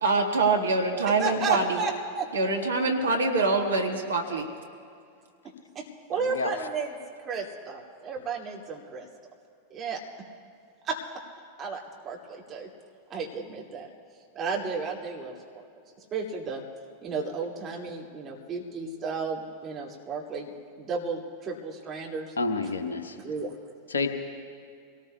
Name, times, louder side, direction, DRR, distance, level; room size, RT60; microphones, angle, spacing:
voice 1, 0.0-1.8 2.3-4.5, right 3 dB, 70° right, 2 dB, 1.6 m, -24 dB
voice 2, 1.2-2.3 5.7-7.0 7.2-9.1 9.7-10.0 10.8-11.0 11.6-12.7 13.1-13.9 14.3-15.6 16.1-16.6 17.0-22.3 23.1-23.6, right 4 dB, 25° right, -2 dB, 2.4 m, -33 dB
voice 3, 6.1-6.5 22.4-23.2 23.9-24.1, left 3 dB, 70° left, 6 dB, 1.1 m, -29 dB
25.5 x 18.5 x 2.3 m, 2.4 s
figure-of-eight pair, 90°, 0 cm